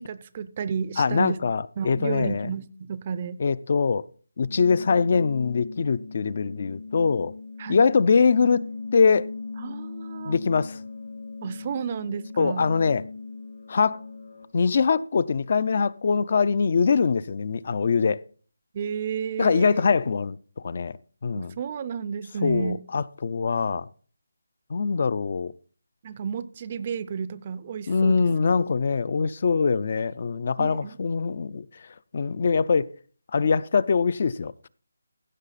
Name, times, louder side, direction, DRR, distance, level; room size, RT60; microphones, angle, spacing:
voice 1, 0.0-1.4 1.8-3.4 7.6-7.8 9.6-10.4 11.4-12.7 18.7-19.8 21.3-22.8 26.0-28.3 30.6-31.0, right 7 dB, 25° right, 0.5 m, -32 dB
voice 2, 1.0-2.5 3.4-4.1 4.4-7.3 7.7-8.6 8.9-9.3 10.3-10.8 12.4-13.0 13.7-14.0 14.5-18.2 19.4-20.4 20.6-21.0 21.2-21.6 22.4-23.9 24.7-25.5 27.9-31.7 32.1-32.9 33.3-34.5, left 5 dB, 35° left, 0.4 m, -23 dB
sound 1, 4.4-14.4, left 4 dB, 65° left, 2.6 m, -39 dB
15.0 x 6.4 x 4.0 m
figure-of-eight pair, 175°, 0 cm